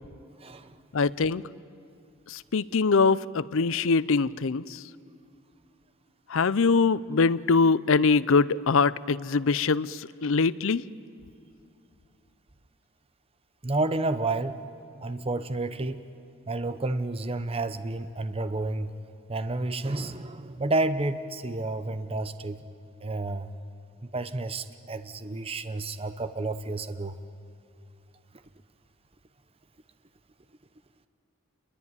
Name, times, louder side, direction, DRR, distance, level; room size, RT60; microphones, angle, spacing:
voice 1, 0.4-0.8 13.6-14.6 15.0-16.0 16.5-18.9 19.3-22.6 23.0-23.5 24.0-27.2, right 2 dB, 25° right, 10 dB, 0.8 m, -30 dB
voice 2, 0.9-1.4 2.3-4.8 6.3-10.8, left 4 dB, 65° left, 18 dB, 0.6 m, -23 dB
28.0 x 21.5 x 9.7 m, 2.5 s
head